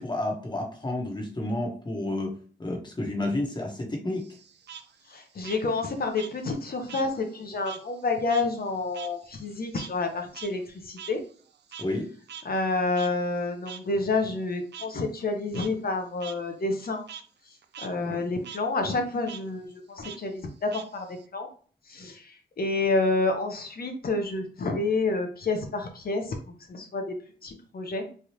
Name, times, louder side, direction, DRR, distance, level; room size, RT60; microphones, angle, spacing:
voice 1, 0.0-4.3 11.8-12.1, left 1 dB, 20° left, 1 dB, 1.0 m, -30 dB
Frog, 4.2-7.1 7.4-12.0 12.3-12.4 12.9-13.1 13.7-13.8 14.7-14.9 15.4-15.7 16.2-16.3 16.7-17.2 17.6-17.9 18.2-18.6 19.2-19.4 20.0-21.2, right 8 dB, 60° right, 0.4 m, -43 dB
voice 2, 5.1-11.2 12.4-17.0 17.8-21.5 21.9-28.1, left 3 dB, 50° left, 5 dB, 0.7 m, -29 dB
3.2 x 2.3 x 2.8 m, 0.43 s
cardioid pair, 65°, 20 cm